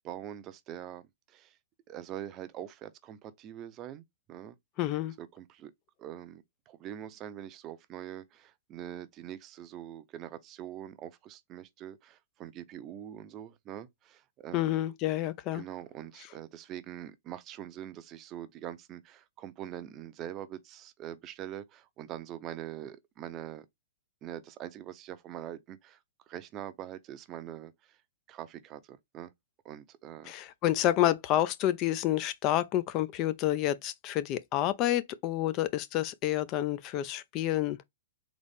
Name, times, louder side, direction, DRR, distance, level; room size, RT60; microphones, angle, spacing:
voice 1, 0.0-1.0 1.3-1.6 1.9-4.6 5.2-5.7 6.0-14.8 15.5-23.7 24.2-26.0 26.3-28.0 28.3-29.3 29.6-30.3, right 11 dB, 30° right, 0.6 m, -43 dB
voice 2, 4.8-5.1 14.5-15.6 30.2-37.8, left 13 dB, 35° left, 0.4 m, -29 dB
4.0 x 3.0 x 3.4 m
hypercardioid pair, 130°, 0 cm